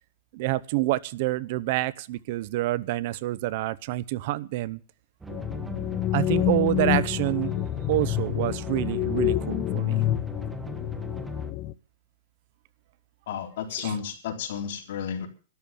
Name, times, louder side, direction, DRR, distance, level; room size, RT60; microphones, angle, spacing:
voice 1, 0.3-4.8 6.1-7.5 7.9-10.0 13.8-13.9, right 16 dB, 50° right, 20 dB, 0.7 m, -27 dB
sound 1, 5.2-11.5, right 2 dB, 10° right, 1.2 m, -39 dB
sound 2, 5.3-11.7, left 13 dB, 35° left, 0.8 m, -28 dB
voice 2, 13.3-15.3, left 8 dB, 65° left, 3 dB, 3.6 m, -32 dB
13.0 x 11.5 x 7.0 m, 0.37 s
supercardioid pair, 150°, 0 cm